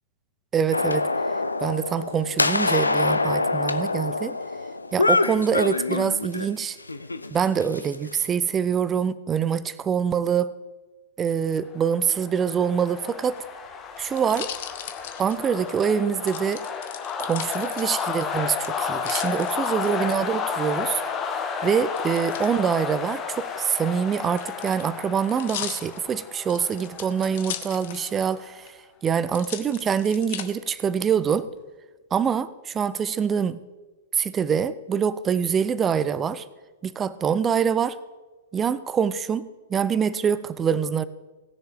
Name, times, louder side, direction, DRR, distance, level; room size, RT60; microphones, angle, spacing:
voice 1, 0.5-1.1 1.6-4.4 4.9-6.8 7.3-10.5 11.2-13.4 14.0-14.5 15.2-16.6 17.2-21.0 21.6-28.7 29.0-31.5 32.1-33.6 34.1-36.4 36.8-38.0 38.5-41.1, right 7 dB, 20° right, 0.5 m, -25 dB
sound 1, 0.7-6.5 6.9-8.2, left 3 dB, 85° left, 0.5 m, -25 dB
sound 2, 11.8-28.5, left 6 dB, 25° left, 1.2 m, -32 dB
sound 3, 13.2-15.7 16.3-18.2 18.6-20.1 22.0-22.5 23.4-28.3 28.7-28.8 29.3-30.4 31.1-31.6, left 10 dB, 50° left, 0.9 m, -38 dB
18.0 x 6.7 x 3.6 m
figure-of-eight pair, 105°, 0 cm